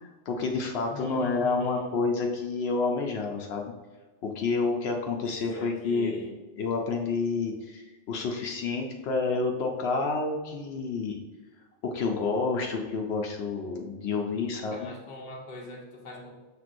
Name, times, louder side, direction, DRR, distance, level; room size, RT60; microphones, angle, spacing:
voice 1, 0.3-3.7 4.2-6.2 6.6-11.2 11.8-14.9, left 4 dB, 80° left, 1 dB, 0.8 m, -29 dB
voice 2, 0.9-1.9 5.5-6.4 14.7-16.4, left 2 dB, 50° left, -1 dB, 0.9 m, -42 dB
5.9 x 3.3 x 2.5 m, 1.2 s
omnidirectional pair, 1.1 m